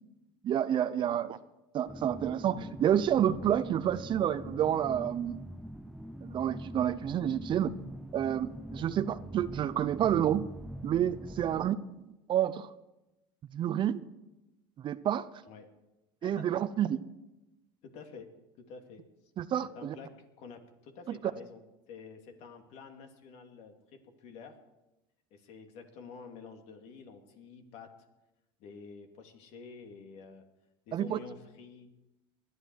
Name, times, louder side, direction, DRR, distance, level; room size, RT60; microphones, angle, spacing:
voice 1, 0.4-1.4 1.7-5.4 6.2-7.7 8.1-10.4 10.8-11.8 12.3-12.7 13.5-14.0 14.8-15.3 16.2-17.0 19.4-19.9 21.1-21.2 30.9-31.2, right 10 dB, 40° right, 15 dB, 0.7 m, -29 dB
sound 1, 1.9-11.7, equal, ahead, 0.5 m, -44 dB
voice 2, 17.8-19.0 19.7-20.1 20.4-21.6 21.9-23.7 24.2-24.6 25.3-27.9 28.6-30.4 30.9-31.9, left 5 dB, 65° left, 5 dB, 2.5 m, -49 dB
20.5 x 11.5 x 4.7 m, 0.97 s
supercardioid pair, 100°, 12 cm